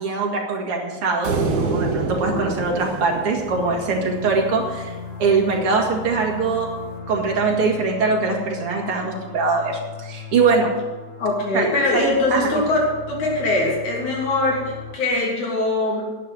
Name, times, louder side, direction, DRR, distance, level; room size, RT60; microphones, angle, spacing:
voice 1, 0.0-6.7 7.1-10.7 11.5-11.7 11.9-12.0 12.3-12.5, right 4 dB, 50° right, 0 dB, 2.9 m, -22 dB
sound 1, 1.2-4.6, right 3 dB, 75° right, 3.1 m, -26 dB
sound 2, 3.4-15.0, left 5 dB, 50° left, 2.6 m, -37 dB
voice 2, 11.2-16.0, left 2 dB, 80° left, -3 dB, 4.5 m, -22 dB
11.0 x 8.0 x 9.1 m, 1.2 s
omnidirectional pair, 3.4 m